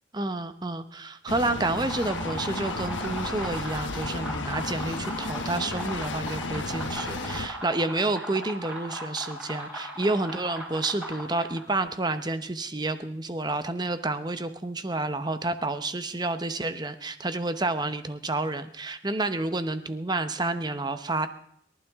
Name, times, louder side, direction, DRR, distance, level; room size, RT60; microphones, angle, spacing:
voice 1, 0.1-21.3, right 2 dB, 20° right, 10 dB, 0.9 m, -29 dB
sound 1, 1.3-7.5, left 3 dB, 85° left, 1.1 m, -34 dB
sound 2, 1.5-11.8, equal, 5° right, 6.1 m, -37 dB
29.0 x 12.0 x 3.7 m, 0.70 s
head